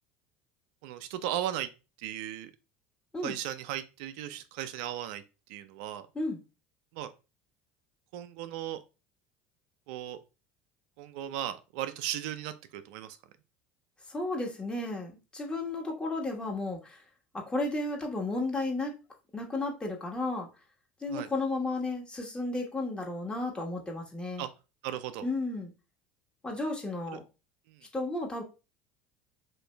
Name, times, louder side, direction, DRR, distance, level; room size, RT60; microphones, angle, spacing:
voice 1, 0.8-1.7 2.0-2.5 3.2-5.2 5.5-6.1 6.9-7.1 8.1-8.8 9.9-10.2 11.0-13.2 21.1-21.3 24.4-24.5 24.8-25.3 27.1-27.2 27.7-27.8, right 11 dB, 70° right, 11 dB, 0.3 m, -36 dB
voice 2, 14.1-17.0 17.3-18.9 19.3-20.5 21.0-24.5 25.2-25.7 26.4-27.2 27.9-28.4, left 2 dB, 15° left, 1 dB, 1.2 m, -33 dB
3.0 x 2.5 x 3.3 m, 0.30 s
hypercardioid pair, 75°, 5 cm